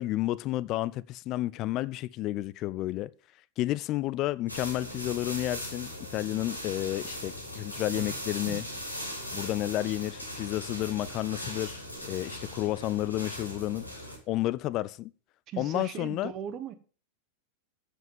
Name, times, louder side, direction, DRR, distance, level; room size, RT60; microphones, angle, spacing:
voice 1, 0.0-3.1 3.6-8.7 9.3-13.8 14.3-15.1 15.6-16.3, left 15 dB, 35° left, 0.4 m, -31 dB
sound 1, 4.5-14.2, equal, 85° left, 3.1 m, -39 dB
voice 2, 15.5-16.7, right 9 dB, 35° right, 1.3 m, -38 dB
7.9 x 7.2 x 7.2 m
figure-of-eight pair, 90°, 0 cm